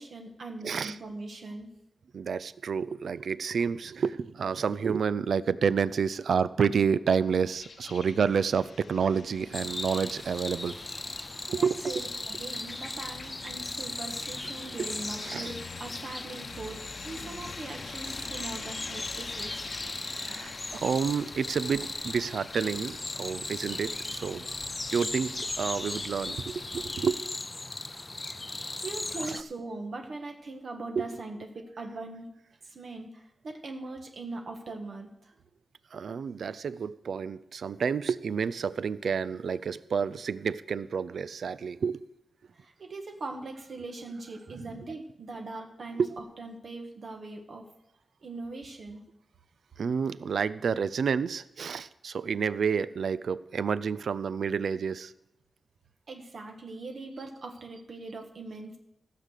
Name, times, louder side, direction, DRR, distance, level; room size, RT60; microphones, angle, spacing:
voice 1, 0.0-1.7 11.5-15.5 15.8-19.7 28.4-32.3 32.6-35.3 42.5-47.6 48.2-49.0 56.1-58.8, right 2 dB, 65° right, 3 dB, 1.4 m, -41 dB
voice 2, 0.6-1.0 2.1-10.8 11.5-11.9 15.2-15.5 17.3-17.4 20.2-24.6 24.9-27.2 31.0-31.1 35.9-42.0 44.5-44.6 46.0-46.1 49.8-55.1, right 6 dB, 80° right, 17 dB, 0.4 m, -29 dB
sound 1, 7.6-27.2, left 5 dB, 70° left, 0.8 m, -46 dB
sound 2, 9.5-29.4, left 2 dB, 25° left, 0.5 m, -37 dB
15.5 x 6.7 x 6.5 m, 0.85 s
wide cardioid pair, 115°, 0 cm